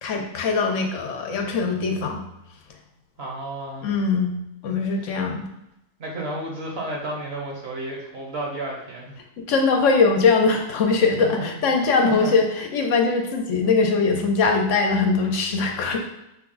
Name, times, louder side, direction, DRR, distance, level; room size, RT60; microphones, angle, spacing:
voice 1, 0.0-2.2 3.8-4.4 4.6-5.5 9.4-16.0, left 4 dB, 70° left, 3 dB, 1.0 m, -21 dB
voice 2, 3.2-3.9 6.0-9.2 11.2-12.3, right 1 dB, 50° right, -1 dB, 1.2 m, -32 dB
6.1 x 2.2 x 3.8 m, 0.85 s
omnidirectional pair, 1.4 m